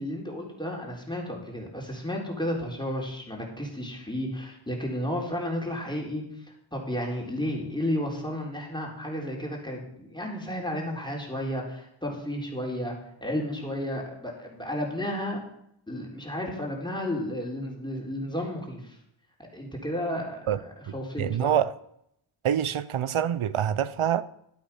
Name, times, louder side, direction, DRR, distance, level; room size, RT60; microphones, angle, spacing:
voice 1, 0.0-6.2 6.7-12.9 13.2-15.4 15.9-19.0 19.5-21.5, left 1 dB, 10° left, 4.0 m, -32 dB
voice 2, 21.2-21.7 22.4-24.2, right 9 dB, 85° right, 0.7 m, -25 dB
12.0 x 8.7 x 5.7 m
cardioid pair, 45°, 48 cm